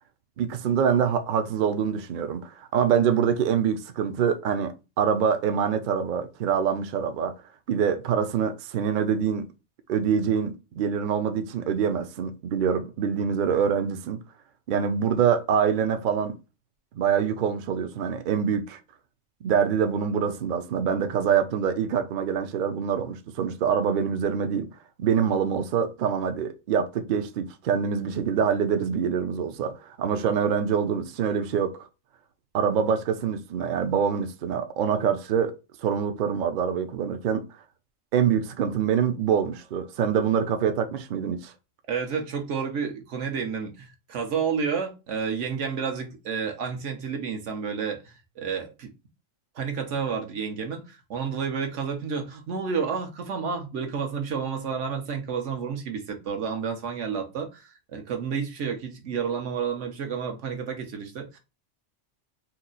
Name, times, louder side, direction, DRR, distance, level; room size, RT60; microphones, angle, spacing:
voice 1, 0.4-7.4 7.7-9.5 9.9-14.2 14.7-16.3 17.0-18.8 19.4-24.7 25.0-31.8 32.5-35.5 35.8-37.5 38.1-41.5, right 7 dB, 60° right, 0.5 m, -25 dB
voice 2, 41.9-48.9 49.5-61.4, right 6 dB, 80° right, 1.2 m, -30 dB
2.9 x 2.4 x 3.8 m
omnidirectional pair, 1.2 m